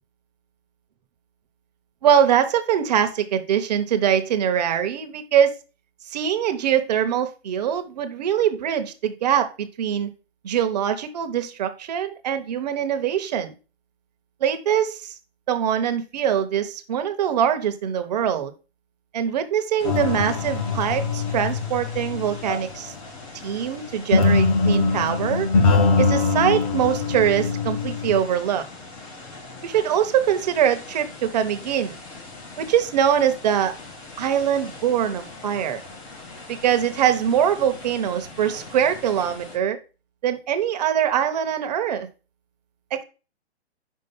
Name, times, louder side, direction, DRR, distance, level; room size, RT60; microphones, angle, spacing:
voice 1, 2.0-5.6 6.1-10.1 10.4-13.5 14.4-15.1 15.5-18.5 19.1-22.9 23.4-25.5 26.0-28.6 29.6-32.0 32.6-33.7 34.2-35.8 36.5-39.8 40.2-42.1 42.9-43.0, right 9 dB, 40° right, 8 dB, 0.9 m, -23 dB
sound 1, 19.8-22.9 24.1-28.2, left 3 dB, 35° left, 0.9 m, -22 dB
sound 2, 19.8-39.6, left 3 dB, 15° left, 0.6 m, -42 dB
5.6 x 4.9 x 5.4 m, 0.33 s
hypercardioid pair, 160°, 32 cm